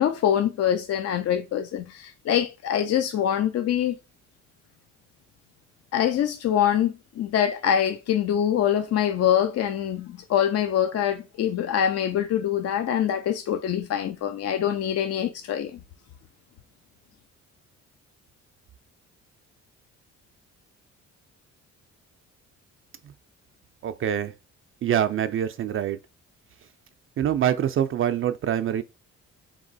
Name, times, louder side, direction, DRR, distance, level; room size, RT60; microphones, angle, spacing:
voice 1, 0.0-4.0 5.9-15.8, left 10 dB, 55° left, 0.5 m, -24 dB
voice 2, 23.8-24.3 24.8-26.0 27.2-28.8, right 10 dB, 45° right, 0.4 m, -25 dB
3.5 x 3.0 x 3.9 m
cardioid pair, 90°, 30 cm